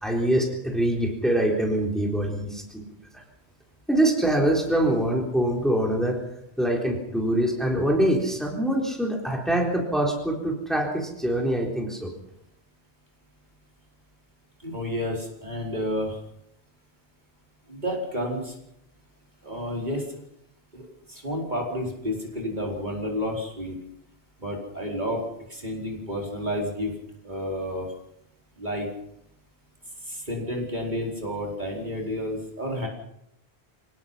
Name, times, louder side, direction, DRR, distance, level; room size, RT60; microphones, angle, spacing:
voice 1, 0.0-2.6 3.9-6.2 6.6-12.1, right 1 dB, ahead, 0 dB, 3.9 m, -24 dB
voice 2, 14.6-16.1 17.7-18.5 19.4-20.0 20.7-23.7 24.4-26.9 27.2-27.9 28.6-28.9 30.1-32.9, equal, 45° right, -1 dB, 5.0 m, -30 dB
27.0 x 18.0 x 5.8 m, 0.77 s
omnidirectional pair, 1.1 m